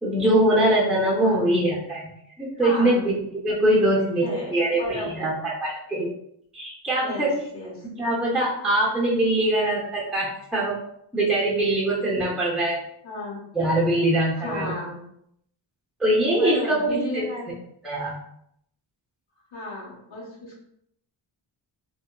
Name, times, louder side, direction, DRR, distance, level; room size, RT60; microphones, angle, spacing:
voice 1, 0.0-2.1 2.4-6.1 6.5-7.4 8.0-10.8 11.1-12.8 13.5-14.7 16.0-17.3 17.8-18.2, right 1 dB, ahead, -5 dB, 0.6 m, -23 dB
voice 2, 2.6-3.0 4.2-5.3 7.0-7.9 11.4-11.6 13.0-13.4 14.4-15.0 16.3-17.5 19.5-20.6, left 1 dB, 85° left, -6 dB, 1.1 m, -34 dB
2.7 x 2.3 x 2.2 m, 0.73 s
cardioid pair, 80°, 45 cm